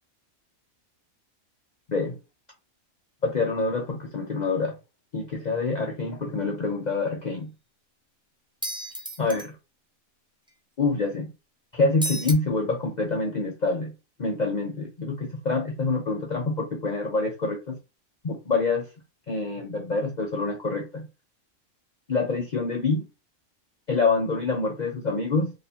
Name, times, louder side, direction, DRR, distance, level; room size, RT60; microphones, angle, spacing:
voice 1, 3.2-4.8 5.1-7.5 9.2-9.5 10.8-11.3 11.7-13.9 14.2-17.8 18.2-18.9 19.3-21.1 22.1-23.1 23.9-25.5, left 3 dB, 45° left, 0.6 m, -26 dB
sound 1, 8.6-9.5 12.0-12.3, equal, 5° right, 0.3 m, -32 dB
2.9 x 2.6 x 4.2 m
omnidirectional pair, 1.4 m